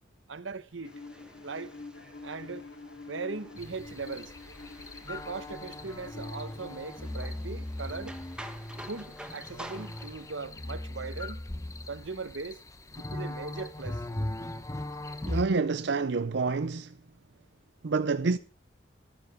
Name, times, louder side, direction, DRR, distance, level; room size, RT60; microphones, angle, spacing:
voice 1, 0.3-0.9 1.4-1.7 2.2-2.6 3.1-4.3 5.0-8.1 8.9-11.5 11.9-12.6 13.1-14.0, right 4 dB, 85° right, 1.0 m, -39 dB
Bowed string instrument, 0.8-7.4, left 3 dB, 80° left, 2.2 m, -47 dB
sound 1, 0.8-10.3, right 1 dB, 5° right, 1.2 m, -50 dB
sound 2, 3.6-15.4, left 1 dB, 15° left, 0.8 m, -39 dB
voice 2, 15.3-16.9 17.8-18.4, right 4 dB, 65° right, 0.5 m, -28 dB
13.0 x 9.9 x 4.9 m
head